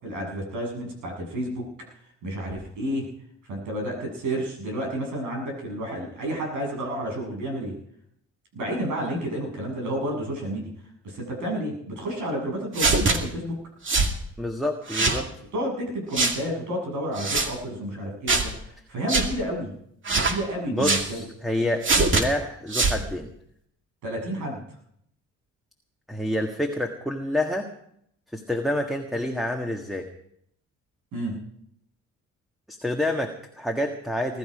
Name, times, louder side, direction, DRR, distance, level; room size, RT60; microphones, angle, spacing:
voice 1, 0.0-1.7 2.2-3.1 3.5-7.7 8.5-10.7 11.0-13.6 15.5-19.7 20.1-21.2 24.0-24.6 31.1-31.4, equal, 80° right, 1 dB, 7.2 m, -30 dB
sound 1, 12.7-13.2 13.9-14.1 14.9-15.2 16.1-16.4 17.2-17.5 18.3-18.5 19.1-19.3 20.0-20.4 20.8-21.1 21.8-22.2 22.7-23.0, right 3 dB, 40° right, 2.4 m, -22 dB
voice 2, 14.4-15.3 20.7-23.3 26.1-27.7 28.3-30.1 32.7-34.4, left 1 dB, ahead, 3 dB, 1.7 m, -28 dB
20.5 x 12.5 x 5.0 m, 0.71 s
cardioid pair, 90°, 30 cm